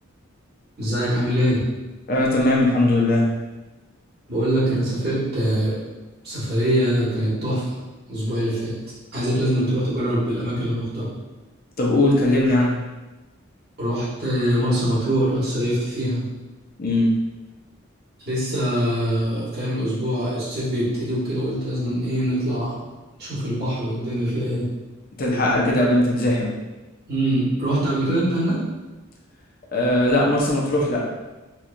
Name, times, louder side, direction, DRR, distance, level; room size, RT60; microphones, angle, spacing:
voice 1, 0.8-1.6 4.3-5.8 6.2-7.8 8.1-8.8 9.1-11.1 13.8-16.2 18.2-22.8 23.2-24.7 27.1-28.6, equal, 50° right, -9 dB, 1.4 m, -23 dB
voice 2, 2.1-3.2 11.8-12.8 16.8-17.1 25.2-26.6 29.7-31.0, left 1 dB, 45° left, -3 dB, 0.7 m, -19 dB
4.3 x 2.4 x 2.5 m, 1.1 s
head